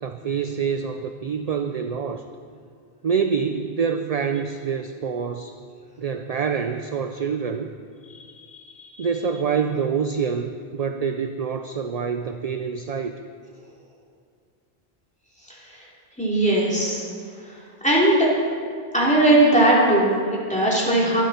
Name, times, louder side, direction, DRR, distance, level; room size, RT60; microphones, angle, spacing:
voice 1, 0.0-2.2 3.0-5.5 6.0-7.7 9.0-13.2, right 6 dB, 50° right, 7 dB, 0.5 m, -26 dB
voice 2, 15.5-15.8 16.2-17.0 17.5-17.6 17.8-18.3 18.9-21.2, right 1 dB, 5° left, -6 dB, 3.2 m, -19 dB
24.0 x 9.1 x 4.3 m, 2.2 s
omnidirectional pair, 1.1 m